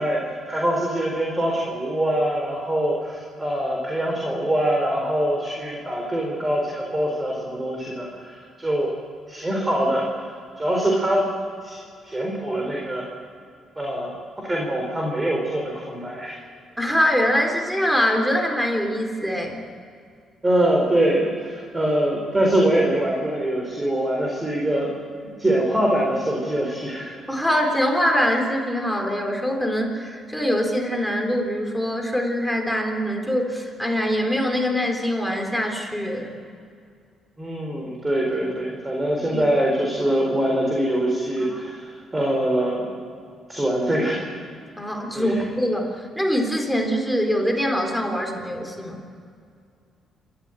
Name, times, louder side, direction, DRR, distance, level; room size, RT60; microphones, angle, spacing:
voice 1, 0.0-8.9 9.3-10.1 10.6-11.3 11.6-13.1 13.8-16.4 20.4-24.9 25.4-27.2 37.4-42.9 43.5-44.3 45.1-45.4, right 1 dB, 15° right, -1 dB, 4.3 m, -23 dB
voice 2, 16.8-19.6 27.3-36.3 39.3-39.4 41.5-41.6 44.8-49.0, equal, ahead, 3 dB, 3.8 m, -23 dB
27.5 x 14.0 x 9.1 m, 2.3 s
cardioid pair, 90°, 0 cm